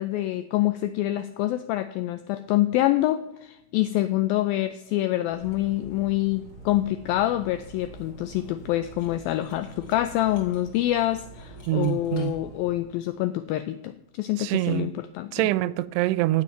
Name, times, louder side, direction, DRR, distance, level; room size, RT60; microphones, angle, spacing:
voice 1, 0.0-15.5, left 14 dB, 85° left, 2.1 m, -26 dB
Cutlery silverware, 5.3-13.0, right 1 dB, 30° left, 1.9 m, -45 dB
voice 2, 11.7-12.3 14.4-14.9 15.3-16.4, right 15 dB, 85° right, 2.6 m, -24 dB
15.0 x 5.4 x 9.3 m
omnidirectional pair, 4.8 m